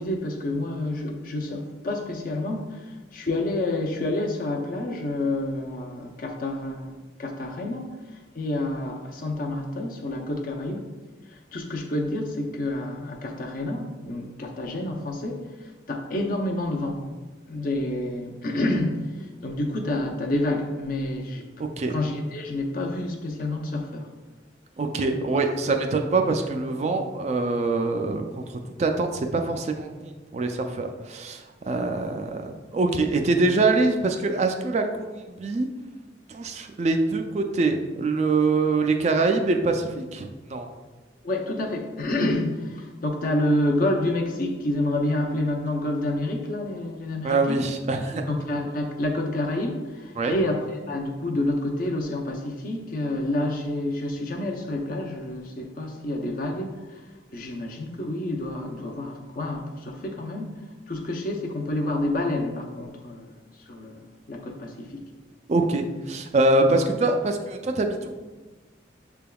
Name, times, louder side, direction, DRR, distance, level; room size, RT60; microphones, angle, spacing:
voice 1, 0.0-7.9 8.3-10.9 11.3-17.1 17.5-19.0 19.4-21.4 21.9-24.1 41.2-47.6 48.3-56.7 57.3-60.6 60.9-63.4 63.7-64.0 64.3-65.0, left 1 dB, 50° left, 2 dB, 0.6 m, -28 dB
voice 2, 21.6-22.0 24.8-35.7 36.3-40.7 47.2-48.2 50.2-50.3 65.5-68.1, right 3 dB, 35° right, 5 dB, 0.3 m, -24 dB
6.5 x 3.5 x 2.3 m, 1.2 s
head